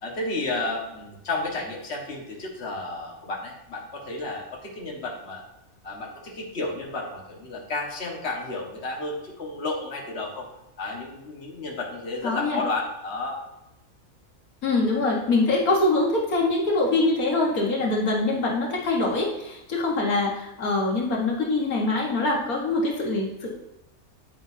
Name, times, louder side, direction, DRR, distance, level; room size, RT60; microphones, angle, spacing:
voice 1, 0.0-5.4 5.8-10.5 10.8-13.4, left 2 dB, 50° left, -1 dB, 1.9 m, -32 dB
voice 2, 12.2-12.6 14.6-23.6, left 2 dB, 85° left, -1 dB, 2.1 m, -24 dB
9.9 x 9.0 x 2.8 m, 0.90 s
omnidirectional pair, 1.5 m